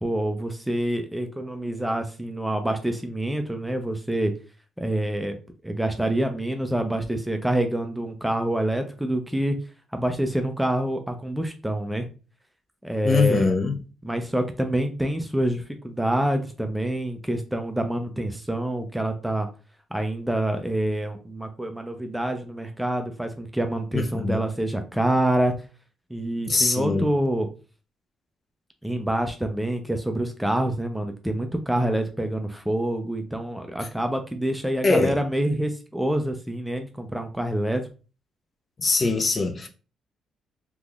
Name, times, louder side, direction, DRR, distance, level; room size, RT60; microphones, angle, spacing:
voice 1, 0.0-4.3 4.8-5.4 5.6-9.6 9.9-12.1 12.8-13.5 14.0-19.5 19.9-25.5 26.1-27.5 28.8-37.8, right 1 dB, 5° right, 0.5 m, -26 dB
voice 2, 13.0-13.8 23.9-24.4 26.5-27.1 34.8-35.2 38.8-39.7, left 3 dB, 40° left, 0.6 m, -22 dB
3.5 x 3.0 x 2.4 m
cardioid pair, 90°, 0 cm